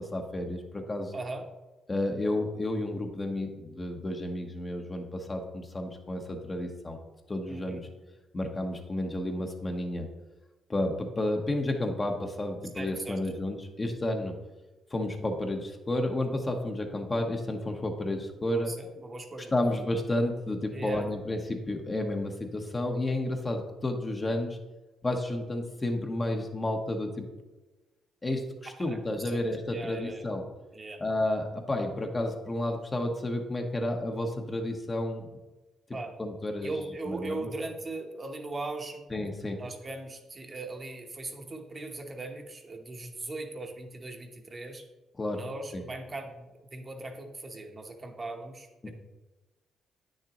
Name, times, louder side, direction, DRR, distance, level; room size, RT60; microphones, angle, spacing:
voice 1, 0.1-1.1 1.9-7.0 7.3-7.9 8.3-10.1 10.7-14.4 14.9-18.7 19.5-24.6 25.0-27.3 28.2-30.5 31.0-35.3 36.2-36.8 37.0-37.5 39.1-39.6 45.2-45.4 45.7-45.8 48.8-48.9, left 1 dB, 25° left, 3 dB, 1.0 m, -31 dB
voice 2, 1.1-1.4 7.5-7.8 12.7-13.2 18.5-19.5 20.7-21.1 28.9-29.0 29.2-29.4 29.7-30.2 30.7-31.0 35.9-36.1 36.6-39.0 39.6-44.9 45.3-48.9, right 2 dB, 30° right, 3 dB, 1.0 m, -39 dB
9.1 x 6.6 x 3.0 m, 1.1 s
cardioid pair, 90°, 0 cm